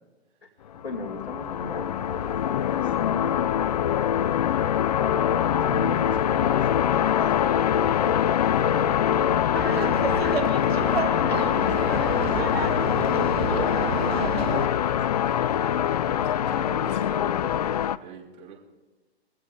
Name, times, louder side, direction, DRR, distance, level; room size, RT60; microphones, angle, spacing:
voice 1, 0.8-3.9 5.0-7.2 9.7-13.9 14.8-15.2, left 1 dB, 70° left, 2 dB, 2.7 m, -38 dB
sound 1, 0.8-18.0, left 9 dB, 40° left, 0.5 m, -24 dB
Laughter, 9.6-14.7, right 6 dB, 65° right, 0.9 m, -30 dB
voice 2, 14.4-18.5, right 6 dB, 45° right, -3 dB, 5.5 m, -45 dB
24.0 x 16.0 x 2.6 m, 1.2 s
figure-of-eight pair, 120°, 33 cm